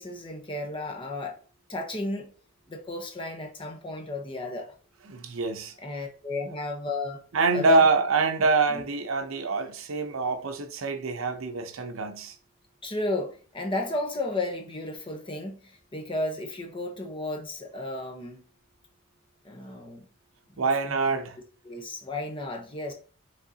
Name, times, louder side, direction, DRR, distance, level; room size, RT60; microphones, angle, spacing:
voice 1, 0.0-1.4 1.7-2.3 2.7-4.7 5.8-7.2 7.5-7.9 8.4-8.5 8.7-8.8 12.8-18.4 19.4-20.1 20.5-21.1 21.6-22.9, left 2 dB, 25° left, 0.8 m, -33 dB
voice 2, 5.1-5.7 7.3-12.3 20.6-21.4, right 3 dB, 75° right, 0.7 m, -25 dB
5.1 x 3.6 x 2.8 m
head